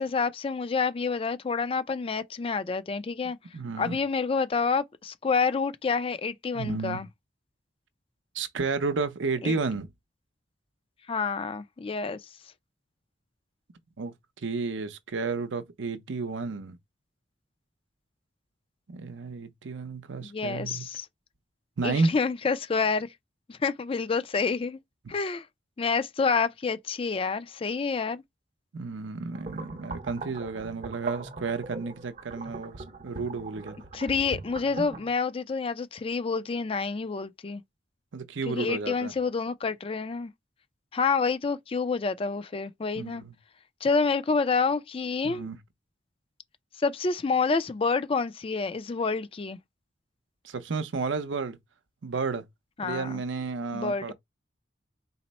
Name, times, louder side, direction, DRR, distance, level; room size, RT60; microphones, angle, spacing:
voice 1, 0.0-3.4 3.8-7.1 9.4-9.6 11.1-12.2 20.2-21.1 21.8-23.1 23.5-24.8 25.1-25.5 25.8-28.2 33.9-37.6 38.5-40.3 40.9-43.2 43.8-45.5 46.8-49.6 52.8-53.2 53.7-54.0, left 4 dB, 30° left, 0.4 m, -28 dB
voice 2, 3.5-4.0 6.5-7.0 8.3-9.9 14.0-14.1 14.4-16.8 18.9-20.9 21.8-22.1 28.7-33.8 38.1-39.1 43.0-43.3 45.2-45.6 50.4-51.6 52.0-52.4 52.8-54.1, right 4 dB, 85° right, 0.7 m, -32 dB
sound 1, 29.3-35.1, right 3 dB, 40° right, 0.6 m, -40 dB
4.1 x 2.0 x 4.1 m
head